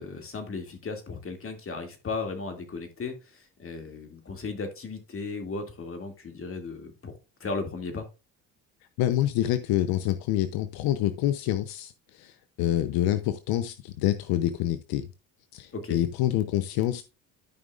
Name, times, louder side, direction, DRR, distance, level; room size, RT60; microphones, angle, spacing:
voice 1, 0.0-8.1 15.7-16.0, left 4 dB, 35° left, 2.4 m, -36 dB
voice 2, 9.0-15.1 15.5-17.0, left 13 dB, 80° left, 0.8 m, -27 dB
13.0 x 5.3 x 2.4 m
supercardioid pair, 85°, 37 cm